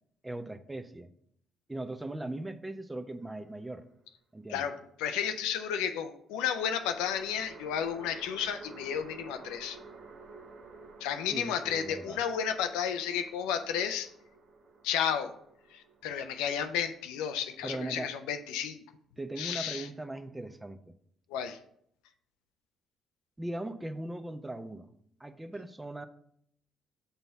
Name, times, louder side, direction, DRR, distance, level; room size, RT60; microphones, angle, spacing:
voice 1, 0.2-1.1 1.7-3.8 4.3-4.7 11.3-12.2 17.6-18.1 19.2-20.8 23.4-24.9 25.2-26.1, right 1 dB, 15° right, 10 dB, 0.6 m, -39 dB
sound 1, 3.2-4.1 6.3-17.7, right 3 dB, 60° right, 0.9 m, -52 dB
voice 2, 4.5-9.8 11.0-14.1 14.8-15.3 15.7-18.8 19.4-19.9 21.3-21.6, left 8 dB, 75° left, 8 dB, 0.5 m, -32 dB
5.6 x 4.0 x 5.6 m, 0.69 s
hypercardioid pair, 50°, 0 cm